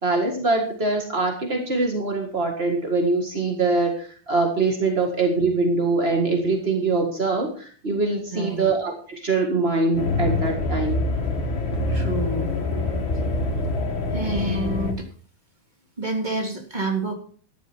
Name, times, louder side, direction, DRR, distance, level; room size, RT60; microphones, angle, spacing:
voice 1, 0.0-11.0, right 3 dB, 35° right, 2 dB, 1.0 m, -23 dB
voice 2, 8.3-8.7 11.9-12.5 14.1-15.1 16.0-17.1, right 2 dB, 15° right, 2 dB, 2.7 m, -28 dB
sound 1, 9.9-14.9, left 2 dB, 40° left, 2.3 m, -25 dB
14.0 x 11.0 x 4.6 m, 0.43 s
omnidirectional pair, 4.3 m